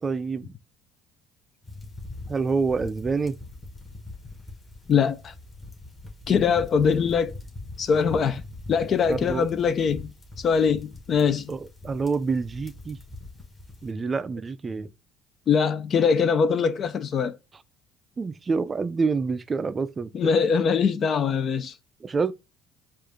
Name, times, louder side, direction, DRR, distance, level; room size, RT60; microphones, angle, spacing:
voice 1, 0.0-0.5 2.3-3.4 9.1-9.5 11.5-13.0 13.8-14.9 18.2-20.3 22.0-22.3, right 4 dB, 30° right, 0.4 m, -27 dB
sound 1, 1.6-13.9, left 2 dB, 25° left, 1.5 m, -42 dB
voice 2, 4.9-5.3 6.3-7.3 7.8-8.4 8.7-10.1 10.4-11.5 15.5-17.4 20.1-21.7, left 6 dB, 45° left, 0.5 m, -22 dB
4.9 x 2.5 x 3.5 m
supercardioid pair, 95°, 0 cm